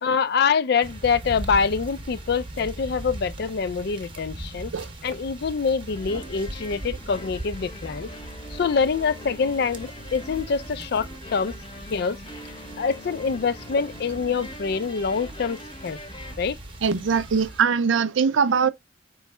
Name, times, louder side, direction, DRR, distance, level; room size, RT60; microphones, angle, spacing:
voice 1, 0.0-4.7 5.0-8.1 8.5-11.6 11.9-12.2 12.8-16.0 16.4-16.6, left 5 dB, 55° left, 0.4 m, -25 dB
sound 1, 0.8-17.6, right 1 dB, 25° right, 0.8 m, -39 dB
sound 2, 5.9-16.4, left 1 dB, 25° left, 0.8 m, -42 dB
voice 2, 16.8-18.7, right 6 dB, 80° right, 0.5 m, -21 dB
4.6 x 3.0 x 3.2 m
head